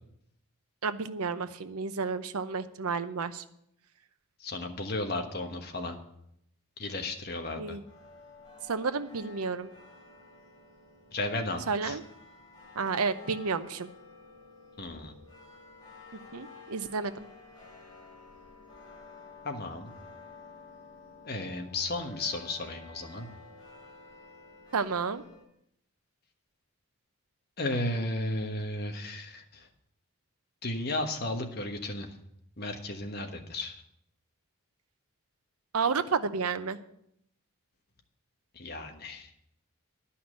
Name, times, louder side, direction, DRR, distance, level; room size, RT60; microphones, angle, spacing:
voice 1, 0.8-3.4 7.6-7.8 8.7-9.7 11.7-12.0 12.7-13.9 16.3-17.1 24.7-25.2 35.7-36.8, right 5 dB, 90° right, 11 dB, 0.8 m, -31 dB
voice 2, 4.4-6.0 6.8-7.8 11.1-12.0 14.8-15.1 19.4-19.9 21.2-23.3 27.6-29.7 30.6-32.2 32.6-33.8 38.5-39.3, left 2 dB, 45° left, 4 dB, 1.3 m, -34 dB
sound 1, 7.8-25.4, left 4 dB, 20° left, 2.9 m, -52 dB
11.5 x 5.8 x 8.7 m, 0.75 s
head